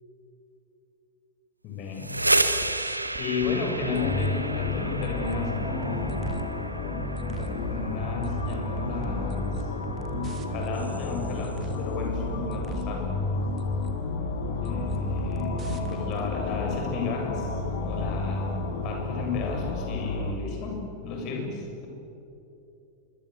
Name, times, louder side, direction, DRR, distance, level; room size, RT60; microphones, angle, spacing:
voice 1, 1.6-2.1 3.2-6.5 7.1-9.7 10.5-13.1 14.6-18.6 18.8-21.9, left 5 dB, 40° left, 1 dB, 7.9 m, -33 dB
sound 1, 1.8-11.6, right 2 dB, 85° right, 1.3 m, -32 dB
sound 2, 2.5-4.4 4.8-6.5 6.9-7.6 8.0-10.8 11.2-11.9 12.2-12.9 13.3-14.0 14.4-16.2 16.5-16.7, right 7 dB, 30° right, 2.6 m, -39 dB
sound 3, 3.9-20.3, left 3 dB, 55° left, 3.8 m, -31 dB
27.5 x 23.5 x 8.4 m, 2.9 s
figure-of-eight pair, 90°, 0 cm